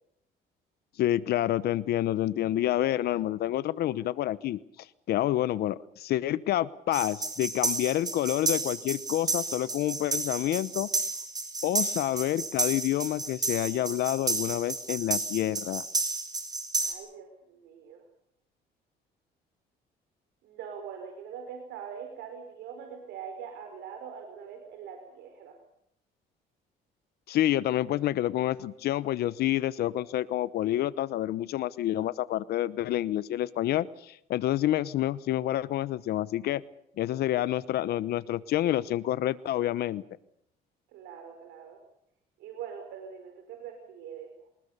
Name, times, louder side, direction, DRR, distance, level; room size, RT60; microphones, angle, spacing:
voice 1, 1.0-10.9 11.6-15.8 27.3-36.6 37.0-40.0, left 13 dB, 70° left, 18 dB, 0.9 m, -28 dB
sound 1, 6.9-16.9, right 3 dB, 20° right, 5.5 m, -32 dB
voice 2, 16.8-18.0 20.4-25.6 40.9-41.8 42.4-44.3, right 7 dB, 85° right, 4 dB, 5.2 m, -43 dB
26.0 x 20.5 x 6.8 m, 0.72 s
cardioid pair, 110°, 17 cm